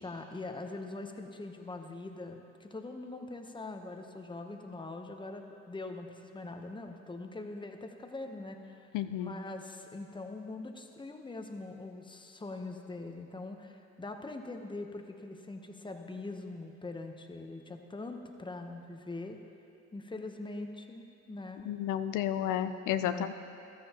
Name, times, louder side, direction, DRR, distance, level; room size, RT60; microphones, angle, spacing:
voice 1, 0.0-8.9 9.2-19.4 19.9-21.7 23.0-23.3, left 2 dB, 15° left, 4 dB, 0.9 m, -42 dB
voice 2, 8.9-9.3 21.7-23.3, left 11 dB, 90° left, 10 dB, 0.5 m, -32 dB
14.5 x 13.5 x 2.9 m, 2.7 s
cardioid pair, 90°, 30 cm